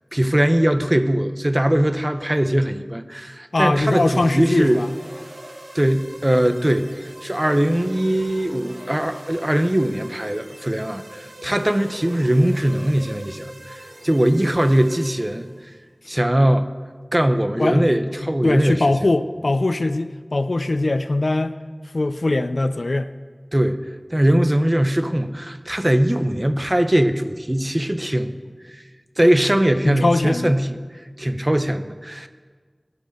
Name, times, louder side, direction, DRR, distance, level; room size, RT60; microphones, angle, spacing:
voice 1, 0.1-4.8 5.7-6.9 7.2-15.5 16.1-16.7 17.1-18.8 23.5-28.3 28.6-28.8 29.2-32.3, right 1 dB, 30° right, 9 dB, 0.9 m, -20 dB
voice 2, 3.5-4.9 17.6-17.9 18.2-21.5 21.9-23.1 29.8-30.5, left 2 dB, 90° left, 11 dB, 0.6 m, -21 dB
sound 1, 3.9-15.6, right 1 dB, 85° right, 2.0 m, -41 dB
17.0 x 11.0 x 6.6 m, 1.5 s
wide cardioid pair, 40°, 0 cm